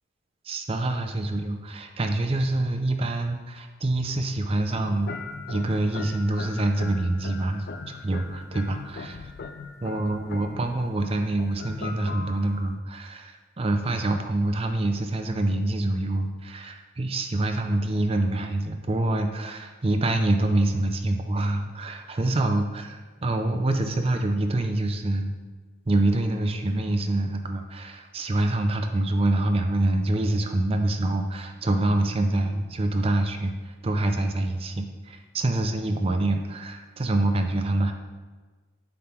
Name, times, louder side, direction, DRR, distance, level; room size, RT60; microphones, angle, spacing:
voice 1, 0.4-5.2 5.5-9.1 9.8-22.8 23.2-25.3 25.9-37.9, right 2 dB, 30° right, 6 dB, 0.5 m, -26 dB
sound 1, 4.7-12.7, left 4 dB, 55° left, 0.3 m, -40 dB
7.6 x 3.7 x 4.4 m, 1.3 s
head